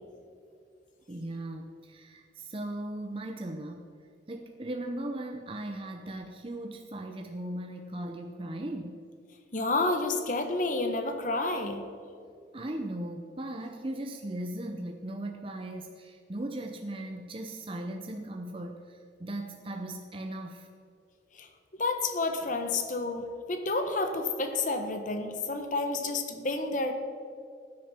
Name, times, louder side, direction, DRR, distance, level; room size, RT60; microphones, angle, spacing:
voice 1, 1.1-3.9 4.3-9.0 12.5-20.7, right 1 dB, 30° right, 4 dB, 0.7 m, -38 dB
voice 2, 9.5-11.8 21.3-21.5 21.8-26.9, left 2 dB, 45° left, 6 dB, 1.3 m, -30 dB
16.0 x 9.5 x 4.4 m, 2.4 s
head